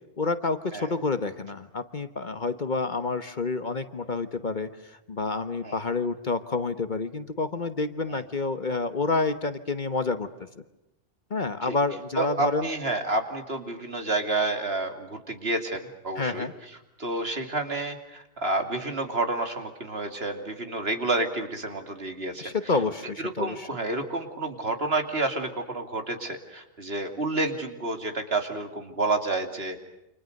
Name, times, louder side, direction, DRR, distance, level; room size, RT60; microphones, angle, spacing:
voice 1, 0.2-10.3 11.3-12.7 16.1-16.5 22.4-23.7, left 3 dB, 40° left, 11 dB, 1.3 m, -29 dB
voice 2, 12.2-16.5 17.0-22.4 23.2-29.8, right 2 dB, 55° right, 6 dB, 2.9 m, -29 dB
29.0 x 26.5 x 6.6 m, 0.90 s
omnidirectional pair, 1.2 m